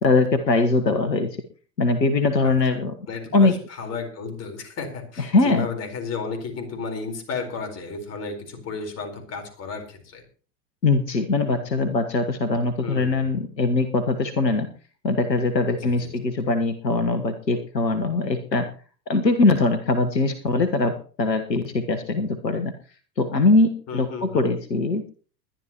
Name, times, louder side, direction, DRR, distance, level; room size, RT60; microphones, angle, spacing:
voice 1, 0.0-1.3 1.8-2.9 3.3-3.5 5.2-5.7 10.8-14.7 15.0-18.7 19.1-22.7 23.2-25.1, left 3 dB, 80° left, 9 dB, 1.5 m, -21 dB
voice 2, 3.1-10.2 12.8-13.3 15.8-16.1 23.9-24.5, left 4 dB, 30° left, 5 dB, 4.3 m, -33 dB
21.0 x 11.5 x 3.0 m, 0.40 s
figure-of-eight pair, 90°, 50 cm